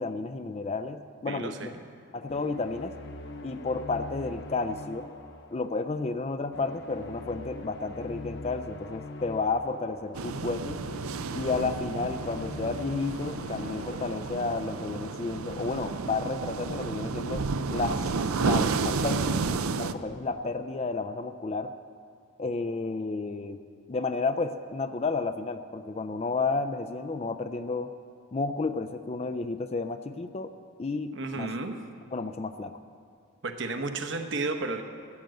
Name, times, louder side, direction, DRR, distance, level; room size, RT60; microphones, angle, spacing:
voice 1, 0.0-1.7 2.1-2.9 3.4-5.1 5.5-10.8 11.3-18.0 18.4-19.4 19.8-21.7 22.4-23.6 23.9-27.9 28.3-30.5 30.8-31.5 32.1-32.7, left 3 dB, 30° left, 10 dB, 0.4 m, -31 dB
voice 2, 1.3-1.8 31.2-31.8 33.4-34.8, right 3 dB, 55° right, 6 dB, 1.0 m, -32 dB
sound 1, 2.3-15.4, left 2 dB, 55° left, 0.9 m, -43 dB
sound 2, 10.1-19.9, right 4 dB, 80° right, 0.5 m, -31 dB
14.5 x 8.9 x 7.7 m, 2.4 s
head